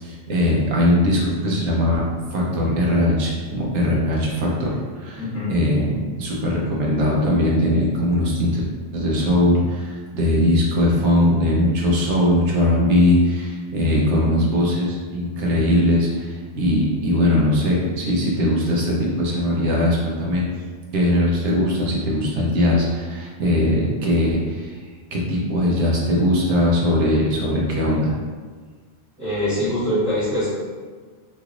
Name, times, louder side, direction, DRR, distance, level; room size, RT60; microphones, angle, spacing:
voice 1, 0.0-2.0 2.3-8.6 8.9-20.4 20.9-24.7 25.1-28.1, left 1 dB, 75° right, -3 dB, 1.0 m, -20 dB
voice 2, 5.1-5.5 29.2-30.5, equal, 15° right, -15 dB, 1.3 m, -23 dB
3.0 x 3.0 x 2.4 m, 1.5 s
omnidirectional pair, 1.2 m